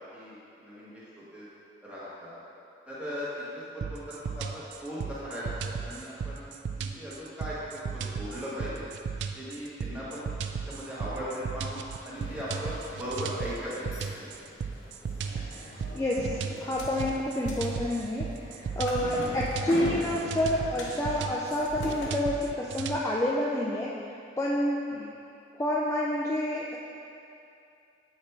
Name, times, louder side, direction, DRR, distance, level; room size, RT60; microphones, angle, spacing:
voice 1, 0.1-1.5 1.8-2.4 2.9-6.5 6.8-7.6 7.8-8.9 9.3-10.3 10.7-14.3 24.9-25.1, equal, 5° right, -10 dB, 1.3 m, -38 dB
sound 1, 3.8-23.0, right 6 dB, 80° right, 0.3 m, -36 dB
sound 2, 12.1-22.1, left 1 dB, 90° left, 0.8 m, -42 dB
voice 2, 15.5-24.0 24.4-24.8 25.6-26.8, left 1 dB, 15° left, -4 dB, 0.3 m, -29 dB
7.8 x 4.4 x 3.3 m, 2.7 s
head